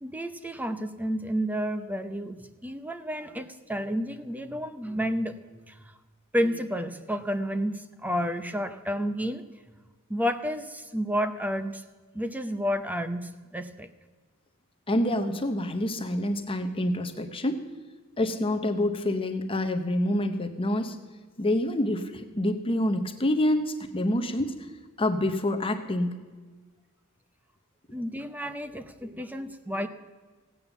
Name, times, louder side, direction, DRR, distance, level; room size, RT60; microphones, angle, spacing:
voice 1, 0.0-5.8 6.3-9.4 10.1-11.8 12.1-13.9 27.9-29.9, equal, 5° right, 10 dB, 0.7 m, -31 dB
voice 2, 14.9-17.6 18.2-21.0 21.4-24.7 25.0-26.2, left 1 dB, 25° left, 7 dB, 0.8 m, -27 dB
16.5 x 8.8 x 7.0 m, 1.4 s
head